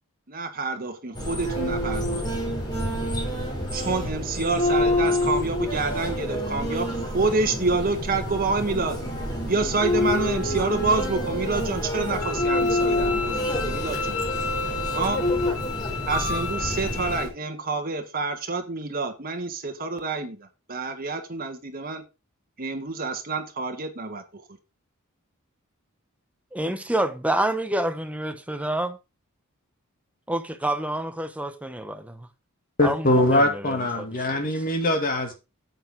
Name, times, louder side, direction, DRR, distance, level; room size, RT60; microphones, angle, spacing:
voice 1, 0.3-2.4 3.7-6.9 7.1-9.0 9.5-14.2 14.9-15.2 16.1-22.0 22.6-24.4, right 3 dB, 45° right, 1.7 m, -28 dB
sound 1, 1.1-17.3, left 1 dB, 20° left, 4.3 m, -27 dB
Bowed string instrument, 12.2-17.2, left 7 dB, 85° left, 0.9 m, -32 dB
voice 2, 26.5-29.0 30.3-32.3 32.8-34.0, right 1 dB, 5° right, 0.9 m, -28 dB
voice 3, 32.8-35.3, left 1 dB, 40° left, 2.4 m, -22 dB
9.2 x 8.0 x 3.7 m
head